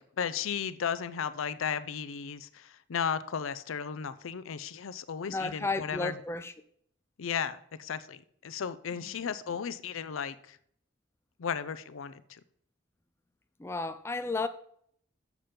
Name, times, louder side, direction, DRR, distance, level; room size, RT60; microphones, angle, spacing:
voice 1, 0.0-6.1 7.2-10.6 11.4-12.4, left 7 dB, 85° left, 0.5 m, -35 dB
voice 2, 5.3-6.5 9.3-9.6 13.6-14.5, left 3 dB, 10° left, 0.3 m, -33 dB
7.1 x 5.8 x 5.1 m
head